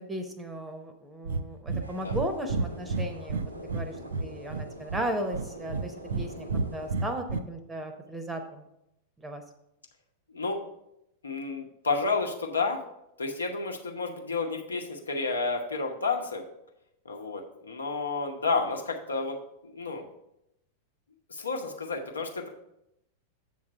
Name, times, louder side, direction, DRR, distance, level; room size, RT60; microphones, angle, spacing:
voice 1, 0.0-3.9 4.2-6.5 6.7-8.7 9.2-9.4, right 1 dB, 10° right, 6 dB, 0.7 m, -36 dB
Breathing, 1.2-1.4 1.7-2.2 2.5-3.9 4.1-5.0 5.3-6.2 6.5-7.4, right 4 dB, 65° right, 0.4 m, -30 dB
sound 1, 1.8-6.9, right 1 dB, 85° right, 0.9 m, -45 dB
voice 2, 10.3-10.6 11.2-12.8 13.2-16.4 17.0-20.0 21.3-22.5, left 4 dB, 75° left, 2 dB, 1.0 m, -31 dB
7.6 x 3.8 x 6.1 m, 0.84 s
figure-of-eight pair, 90°, 0 cm